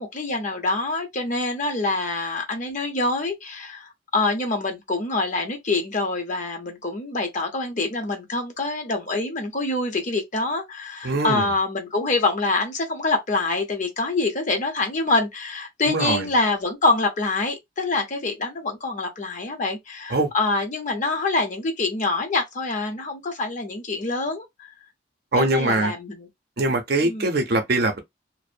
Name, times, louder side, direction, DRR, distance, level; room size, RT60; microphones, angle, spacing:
voice 1, 0.0-24.7 25.4-26.3 27.0-27.3, left 3 dB, 40° left, 0.7 m, -25 dB
voice 2, 11.0-11.5 15.9-16.3 20.1-20.3 25.3-25.9 26.6-28.0, right 2 dB, 55° right, 0.6 m, -22 dB
2.5 x 2.0 x 2.5 m
head